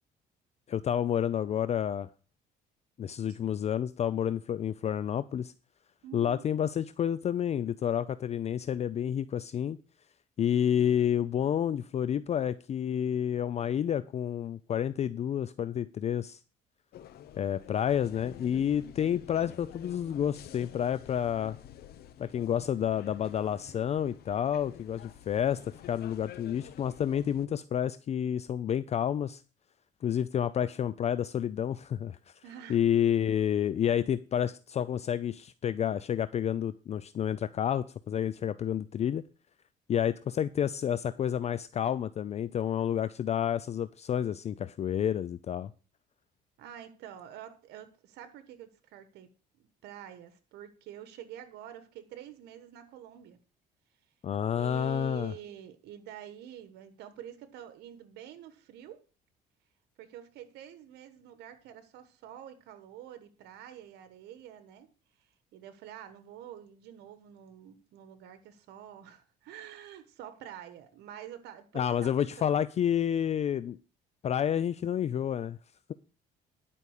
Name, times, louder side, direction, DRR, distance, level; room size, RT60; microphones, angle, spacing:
voice 1, 0.7-2.1 3.0-5.5 6.1-9.8 10.4-16.4 17.4-21.6 22.2-25.6 25.9-29.4 30.0-32.2 32.7-39.2 39.9-45.7 54.2-55.3 71.7-73.8 74.2-75.6, left 9 dB, 40° left, 0.4 m, -29 dB
voice 2, 6.0-6.5 32.4-32.8 46.6-53.4 54.5-59.0 60.0-64.9 65.5-72.5, right 10 dB, 80° right, 1.2 m, -47 dB
sound 1, 16.9-27.5, left 11 dB, 65° left, 0.9 m, -49 dB
11.0 x 5.3 x 6.5 m
cardioid pair, 110°, 17 cm